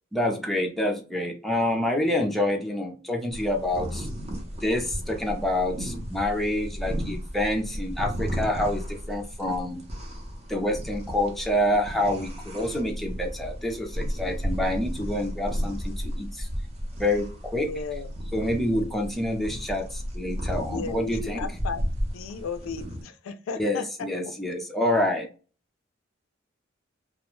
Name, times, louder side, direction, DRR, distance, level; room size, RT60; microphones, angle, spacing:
voice 1, 0.1-4.1 4.6-9.8 10.5-16.5 17.0-17.3 17.5-17.7 18.3-21.4 23.6-25.3, left 1 dB, ahead, 0.5 m, -27 dB
sound 1, 3.3-23.0, equal, 35° right, 0.7 m, -34 dB
voice 2, 17.5-18.1 20.7-23.9 24.2-24.3, left 5 dB, 85° left, 0.4 m, -35 dB
2.3 x 2.1 x 3.0 m
head